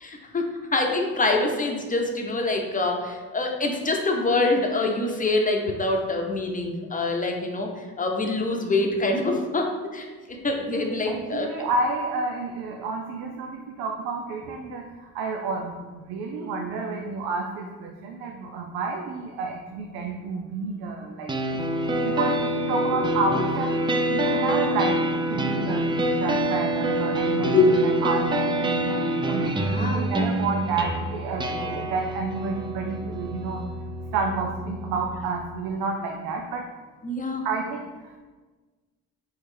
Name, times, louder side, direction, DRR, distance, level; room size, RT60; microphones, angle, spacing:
voice 1, 0.0-10.1 10.4-11.5 23.0-23.1 27.4-28.0 29.6-30.0 37.0-37.4, left 2 dB, 20° left, 2 dB, 0.8 m, -25 dB
voice 2, 11.1-21.6 21.8-29.0 29.3-33.6 34.1-36.7 37.4-38.2, right 3 dB, 85° right, 2 dB, 0.5 m, -30 dB
sound 1, 21.3-35.3, right 1 dB, 15° right, 0.4 m, -26 dB
4.6 x 3.3 x 3.2 m, 1.3 s
supercardioid pair, 70°, 38 cm